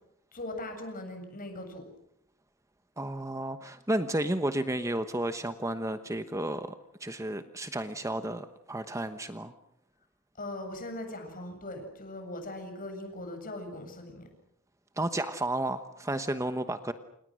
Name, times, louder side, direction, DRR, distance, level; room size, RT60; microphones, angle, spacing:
voice 1, 0.3-1.8 10.4-14.3, left 1 dB, 40° left, 6 dB, 7.5 m, -40 dB
voice 2, 3.0-6.7 7.0-9.5 15.0-16.9, right 1 dB, 15° right, 9 dB, 1.1 m, -32 dB
29.0 x 28.5 x 6.4 m, 0.76 s
head